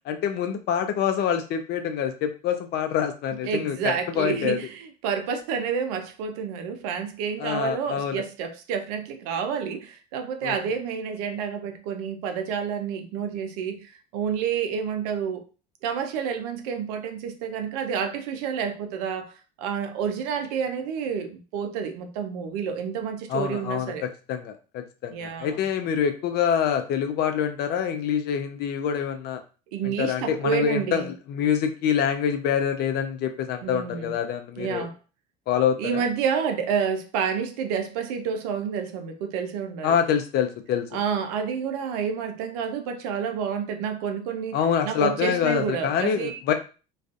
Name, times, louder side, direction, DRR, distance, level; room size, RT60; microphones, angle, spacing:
voice 1, 0.1-3.8 4.2-4.6 7.4-8.2 10.4-10.5 23.3-23.9 24.3-29.4 29.8-34.9 35.5-36.0 39.8-40.9 44.5-46.5, left 8 dB, 55° left, 0.5 m, -26 dB
voice 2, 3.4-15.4 15.8-24.1 25.1-25.6 29.7-31.1 33.6-34.1 34.6-35.0 35.8-39.9 40.9-44.6 44.8-46.4, right 7 dB, 75° right, 0.5 m, -29 dB
2.4 x 2.4 x 2.3 m
supercardioid pair, 85°, 19 cm